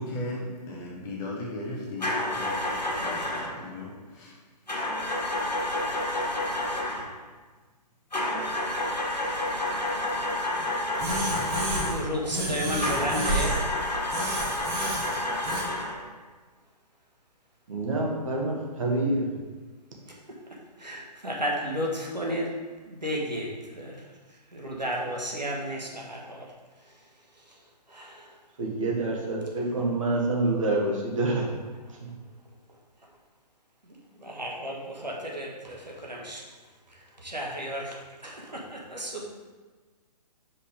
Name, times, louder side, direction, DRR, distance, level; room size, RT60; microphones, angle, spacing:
voice 1, 0.0-2.5 3.0-4.3, left 1 dB, 15° left, -4 dB, 0.9 m, -36 dB
sound 1, 2.0-3.6 4.7-7.1 8.1-12.1 12.8-16.0, left 1 dB, 80° left, 1.4 m, -29 dB
sound 2, 11.0-12.0 12.3-13.6 14.1-15.6, right 1 dB, 20° right, 1.1 m, -30 dB
voice 2, 11.5-13.7 20.8-22.6 22.9-24.0 24.5-26.5 27.9-28.3 33.9-36.4 37.2-39.3, equal, 85° right, -2 dB, 1.4 m, -33 dB
voice 3, 17.7-19.3 28.6-31.5, right 2 dB, 50° right, -2 dB, 1.5 m, -27 dB
5.2 x 4.2 x 5.1 m, 1.3 s
figure-of-eight pair, 130°, 21 cm